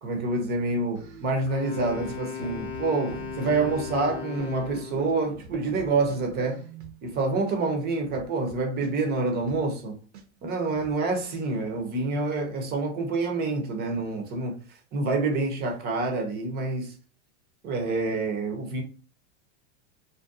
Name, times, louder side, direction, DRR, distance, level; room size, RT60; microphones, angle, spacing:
voice 1, 0.0-6.6 7.0-10.0 10.4-14.6 14.9-16.9 17.6-18.8, right 3 dB, 25° right, 0.6 m, -27 dB
sound 1, 0.9-7.2 7.5-7.6 7.8-9.8 10.1-10.2 10.5-10.9, right 5 dB, 70° right, 0.8 m, -44 dB
Wind instrument woodwind instrument, 1.5-5.2, left 7 dB, 30° left, 0.5 m, -37 dB
2.6 x 2.2 x 2.3 m
supercardioid pair, 140°, 36 cm